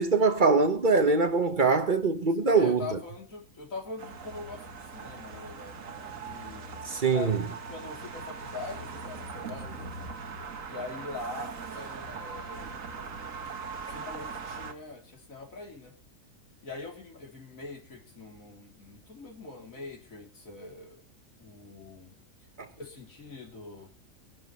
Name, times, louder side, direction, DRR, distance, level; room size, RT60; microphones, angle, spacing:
voice 1, 0.0-3.0 6.9-7.4, right 4 dB, 40° right, 1.2 m, -23 dB
voice 2, 2.5-9.9 10.7-12.7 13.9-16.0 16.6-21.0 21.4-22.1 22.8-23.9, left 3 dB, 80° left, 3.5 m, -43 dB
sound 1, 4.0-14.7, right 4 dB, 75° right, 1.8 m, -40 dB
23.0 x 11.5 x 3.0 m
omnidirectional pair, 1.4 m